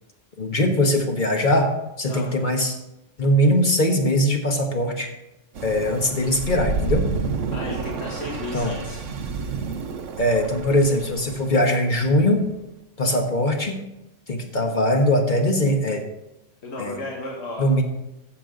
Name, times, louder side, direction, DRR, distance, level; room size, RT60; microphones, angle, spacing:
voice 1, 0.4-2.8 3.2-5.1 5.6-7.0 8.5-8.7 10.2-12.4 13.0-13.8 14.3-16.0 16.8-17.0 17.6-17.8, left 1 dB, 40° left, 3 dB, 1.4 m, -21 dB
sound 1, 5.6-12.5, right 4 dB, 90° right, 1.2 m, -30 dB
voice 2, 7.5-9.0 16.6-17.8, left 2 dB, 60° left, -2 dB, 1.8 m, -34 dB
14.5 x 7.0 x 3.9 m, 0.91 s
omnidirectional pair, 1.3 m